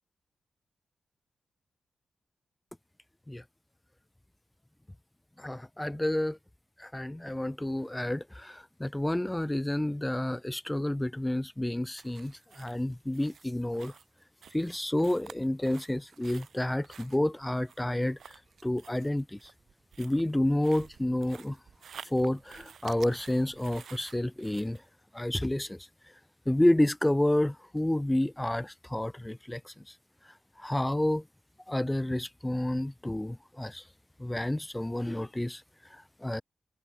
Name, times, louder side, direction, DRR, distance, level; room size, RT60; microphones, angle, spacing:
voice 1, 5.4-6.4 6.8-13.9 14.5-18.2 18.6-19.4 20.0-21.6 22.1-24.8 25.1-25.8 26.5-29.7 30.6-31.2 31.7-33.8 34.2-35.6 36.2-36.4, left 1 dB, 10° left, 0.5 m, -29 dB
sound 1, 12.0-24.8, right 7 dB, 75° right, 1.0 m, -52 dB
cardioid pair, 100°, 0 cm